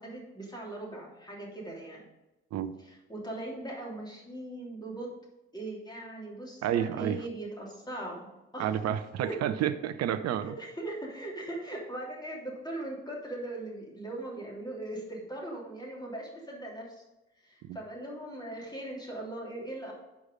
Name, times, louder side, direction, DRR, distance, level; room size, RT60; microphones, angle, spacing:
voice 1, 0.0-2.0 2.8-5.2 5.5-8.7 9.2-9.4 10.6-17.0 17.4-19.9, right 1 dB, 10° left, -3 dB, 3.0 m, -40 dB
voice 2, 6.6-7.2 8.6-10.5 17.7-17.8, right 10 dB, 45° right, 12 dB, 0.6 m, -30 dB
8.5 x 4.8 x 5.2 m, 1.0 s
figure-of-eight pair, 40°, 36 cm